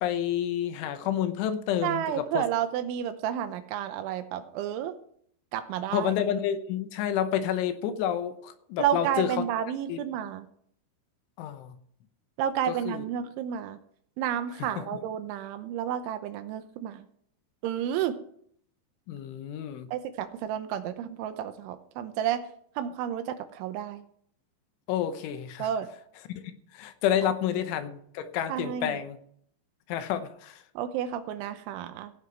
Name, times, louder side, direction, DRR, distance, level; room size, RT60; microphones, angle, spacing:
voice 1, 0.0-2.5 5.9-9.5 9.9-10.0 11.4-11.8 12.7-13.1 14.6-15.0 19.1-19.9 24.9-25.7 26.4-29.2 29.9-30.6, left 10 dB, 80° left, 9 dB, 3.4 m, -29 dB
voice 2, 1.8-5.0 5.5-6.1 8.8-10.5 12.4-13.8 14.2-17.1 17.6-18.2 19.9-22.5 22.8-24.0 25.6-25.9 28.5-29.0 30.8-32.1, right 10 dB, 80° right, 9 dB, 3.2 m, -31 dB
16.0 x 7.9 x 4.6 m, 0.64 s
omnidirectional pair, 5.6 m